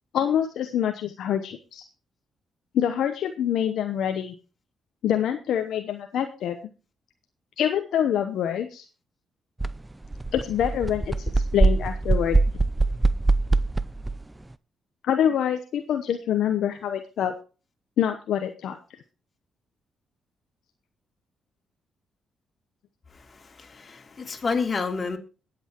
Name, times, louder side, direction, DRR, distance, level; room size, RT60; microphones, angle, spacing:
voice 1, 0.1-1.8 2.7-4.3 5.0-6.6 7.6-8.8 10.3-12.4 15.0-17.3 18.0-18.8, left 9 dB, 75° left, 6 dB, 0.9 m, -25 dB
sound 1, 9.6-9.7 10.0-14.2, right 3 dB, 15° right, 0.6 m, -22 dB
voice 2, 23.1-25.2, left 4 dB, 40° left, 4 dB, 2.8 m, -30 dB
22.0 x 7.9 x 3.0 m, 0.35 s
supercardioid pair, 55°, 0 cm